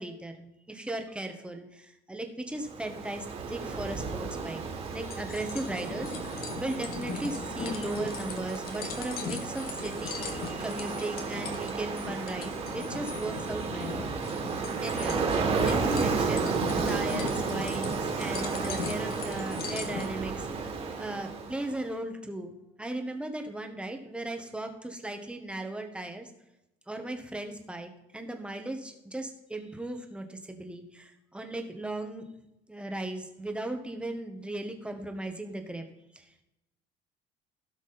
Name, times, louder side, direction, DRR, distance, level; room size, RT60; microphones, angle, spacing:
voice 1, 0.0-4.6 4.9-14.3 14.8-22.5 22.8-26.3 26.9-32.2 32.7-35.9 36.1-36.4, right 1 dB, 5° right, 5 dB, 1.4 m, -37 dB
Ocean, 2.6-21.8, right 4 dB, 35° right, 2.5 m, -33 dB
sound 1, 5.0-20.1, left 6 dB, 60° left, 1.8 m, -40 dB
16.5 x 6.1 x 4.3 m, 0.88 s
cardioid pair, 130°, 18 cm